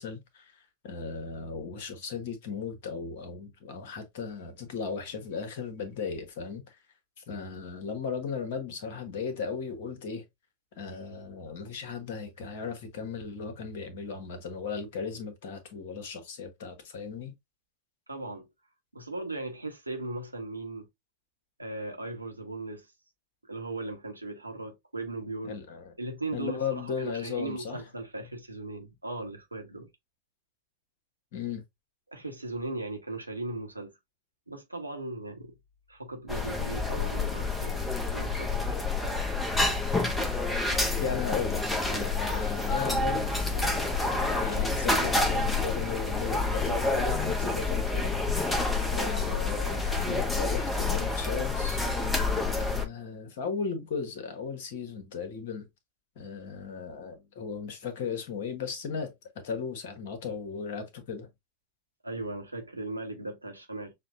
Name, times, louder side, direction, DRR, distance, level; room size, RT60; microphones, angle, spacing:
voice 1, 0.0-6.8 7.2-10.2 10.7-17.3 25.4-25.9 26.3-27.8 31.3-31.6 41.0-41.6 41.9-48.1 48.9-51.9 52.4-55.7 56.1-61.3, left 6 dB, 50° left, 1.3 m, -36 dB
voice 2, 18.1-18.5 18.9-20.9 21.6-22.9 23.5-25.6 26.0-29.9 32.1-33.9 34.5-35.5 35.9-37.8 38.1-38.7 62.0-63.9, right 2 dB, 85° right, 1.0 m, -38 dB
sound 1, 36.3-52.9, left 3 dB, 10° left, 0.8 m, -28 dB
6.5 x 2.3 x 2.6 m
figure-of-eight pair, 90°, 0 cm